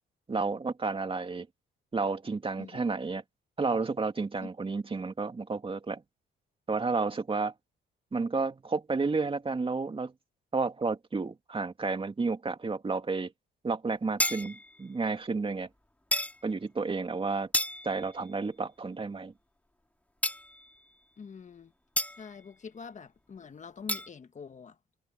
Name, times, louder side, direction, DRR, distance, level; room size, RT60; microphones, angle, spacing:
voice 1, 0.3-1.5 1.9-3.2 3.6-6.0 6.7-7.5 8.1-10.1 10.5-13.3 13.6-15.7 16.4-17.5 17.8-19.3, right 4 dB, 25° right, 2.9 m, -31 dB
sound 1, 14.2-14.8 16.1-16.4 17.5-18.1 20.2-20.7 22.0-22.3 23.9-24.1, left 1 dB, 5° left, 4.2 m, -31 dB
voice 2, 21.2-21.7 22.2-24.7, left 5 dB, 40° left, 1.5 m, -45 dB
cardioid pair, 90°, 20 cm